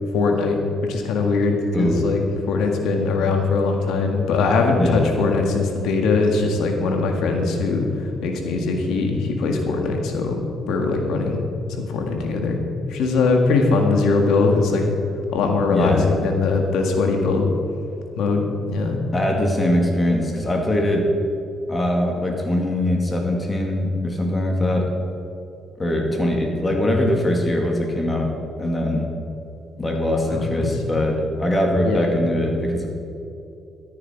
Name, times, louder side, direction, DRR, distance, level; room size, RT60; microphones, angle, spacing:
voice 1, 0.1-10.4 10.7-11.4 11.7-12.6 12.9-14.8 15.3-17.5 18.1-19.0 30.3-30.7 31.8-32.2, left 3 dB, 85° left, 3 dB, 1.8 m, -21 dB
voice 2, 1.7-2.0 4.7-5.0 15.7-16.1 19.1-21.1 21.7-24.9 25.8-28.3 28.6-29.1 29.8-32.9, left 1 dB, 25° left, 1 dB, 2.4 m, -22 dB
14.0 x 9.7 x 4.7 m, 2.7 s
cardioid pair, 90°, 0 cm